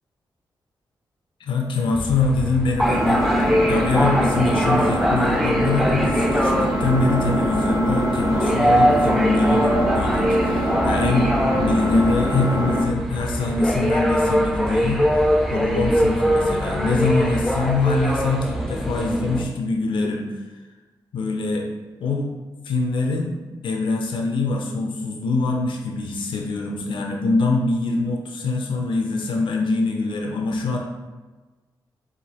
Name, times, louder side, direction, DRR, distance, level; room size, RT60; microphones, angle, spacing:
voice 1, 1.4-15.0 15.5-20.3 21.1-21.7 22.0-22.3 22.7-23.4 23.6-30.8, left 3 dB, 80° left, 2 dB, 0.5 m, -23 dB
sound 1, 1.9-19.5, equal, ahead, 0.4 m, -23 dB
Engine, 2.8-12.8, equal, 40° right, 0.8 m, -23 dB
4.9 x 2.5 x 2.8 m, 1.3 s
cardioid pair, 90°, 8 cm